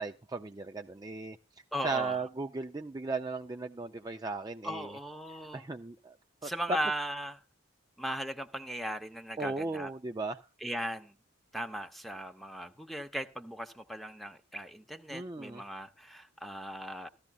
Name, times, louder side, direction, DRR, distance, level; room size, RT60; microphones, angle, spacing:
voice 1, 0.0-1.4 1.8-5.0 5.5-6.2 6.4-6.8 9.4-10.4 15.1-15.6, right 3 dB, 20° right, 0.5 m, -36 dB
voice 2, 1.7-2.2 4.6-5.6 6.4-7.4 8.0-9.9 10.6-11.2 11.5-17.1, equal, ahead, 0.9 m, -38 dB
15.0 x 13.5 x 2.4 m
head